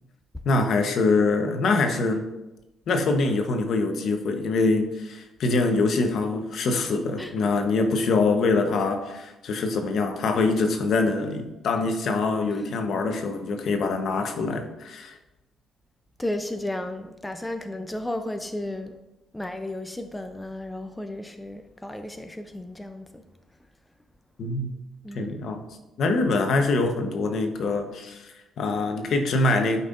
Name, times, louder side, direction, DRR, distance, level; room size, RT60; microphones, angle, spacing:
voice 1, 0.4-2.3 2.9-15.2 24.4-24.7 25.1-25.6 26.0-29.8, left 3 dB, 65° left, 5 dB, 1.0 m, -24 dB
voice 2, 16.2-18.9 19.3-23.2 25.0-25.4, left 1 dB, 10° left, 7 dB, 0.5 m, -33 dB
12.0 x 5.6 x 2.6 m, 0.99 s
cardioid pair, 90°, 0 cm